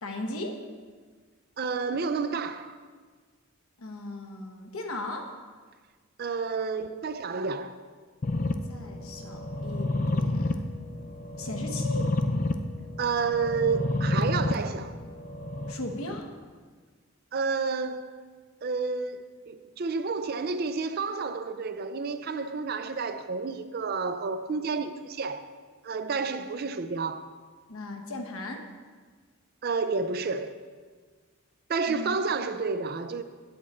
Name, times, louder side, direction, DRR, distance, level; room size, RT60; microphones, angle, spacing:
voice 1, 0.0-0.6 3.8-5.3 8.7-10.7 11.4-12.0 15.7-16.3 27.7-28.7 31.9-32.2, left 1 dB, 70° left, 1.0 m, -37 dB
voice 2, 1.6-2.7 6.2-7.8 13.0-15.0 17.3-18.1 18.6-25.5 25.8-27.3 29.6-30.5 31.7-33.2, right 4 dB, 45° right, 0.4 m, -30 dB
sound 1, 8.2-16.2, left 2 dB, 35° left, 0.4 m, -30 dB
8.5 x 8.3 x 4.3 m
head